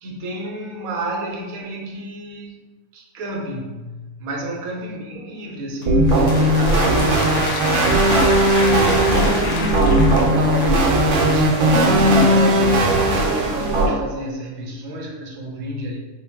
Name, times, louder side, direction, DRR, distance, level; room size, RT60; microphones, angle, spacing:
voice 1, 0.0-2.6 2.9-16.0, right 1 dB, 90° right, 0 dB, 1.1 m, -30 dB
sound 1, 5.8-10.9, left 3 dB, 70° left, 0.8 m, -29 dB
sound 2, 5.9-13.9, right 1 dB, 70° right, 0.9 m, -17 dB
3.6 x 2.2 x 3.4 m, 1.2 s
omnidirectional pair, 1.4 m